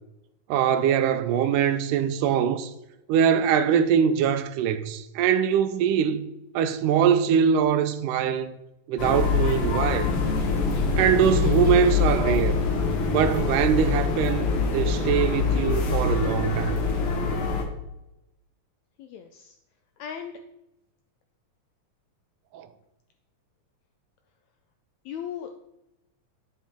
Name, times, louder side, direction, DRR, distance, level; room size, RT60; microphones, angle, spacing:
voice 1, 0.5-2.7 3.1-6.3 6.6-8.6 8.9-10.1 11.0-12.6 13.1-16.8 22.5-22.7, right 8 dB, 80° right, 2.1 m, -23 dB
sound 1, 9.0-17.6, left 5 dB, 60° left, 1.5 m, -24 dB
voice 2, 20.0-20.3 25.1-25.5, left 8 dB, 80° left, 1.6 m, -35 dB
10.0 x 7.2 x 3.5 m
omnidirectional pair, 3.8 m